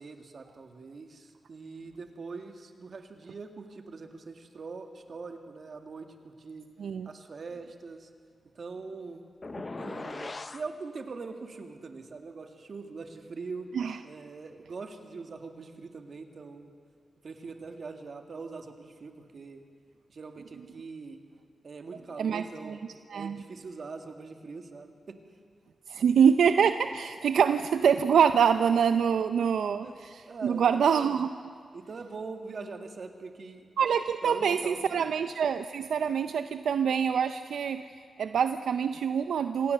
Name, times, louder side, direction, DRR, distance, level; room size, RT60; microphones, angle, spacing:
voice 1, 0.0-6.7 7.1-8.1 8.6-9.3 9.8-13.7 14.0-16.7 17.2-19.6 20.1-21.2 21.6-22.8 23.1-25.2 25.9-26.0 29.8-30.0 30.3-30.8 31.7-33.7 34.2-35.1, right 4 dB, 60° right, 6 dB, 2.0 m, -42 dB
sound 1, 9.4-10.7, left 3 dB, 35° left, 0.7 m, -39 dB
voice 2, 22.2-22.8 23.1-23.4 25.9-31.5 33.8-37.8 38.2-39.7, right 7 dB, 90° right, 9 dB, 0.5 m, -25 dB
26.0 x 18.0 x 6.7 m, 2.2 s
cardioid pair, 80°, 0 cm